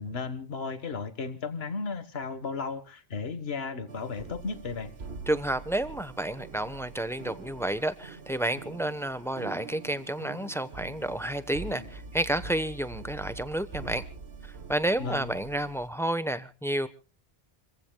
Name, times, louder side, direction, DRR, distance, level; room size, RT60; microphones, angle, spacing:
voice 1, 0.0-4.9 15.0-15.4, left 4 dB, 75° left, 1.6 m, -34 dB
sound 1, 3.9-15.9, right 4 dB, 90° right, 1.5 m, -44 dB
voice 2, 5.3-14.0 14.4-16.9, right 1 dB, 5° left, 0.9 m, -30 dB
28.5 x 15.5 x 2.2 m
omnidirectional pair, 1.0 m